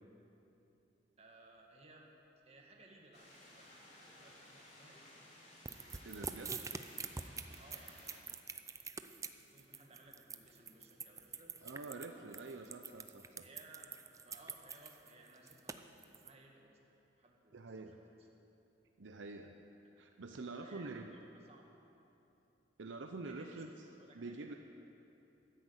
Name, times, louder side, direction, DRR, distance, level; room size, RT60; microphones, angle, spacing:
voice 1, 1.2-2.2 2.5-5.5 7.3-8.2 9.1-11.6 12.1-12.4 13.4-13.9 14.2-17.5 20.2-21.7 23.2-24.6, right 2 dB, 35° right, 0 dB, 1.9 m, -61 dB
sound 1, 3.1-8.2, left 1 dB, 35° left, 3.1 m, -58 dB
sound 2, 5.7-16.3, right 5 dB, 15° right, 0.5 m, -45 dB
voice 2, 6.0-6.6 11.6-13.5 17.5-18.0 19.0-19.5 20.0-21.1 22.8-23.8 24.1-24.5, right 3 dB, 75° right, 5 dB, 0.7 m, -46 dB
13.0 x 10.0 x 8.1 m, 2.9 s
head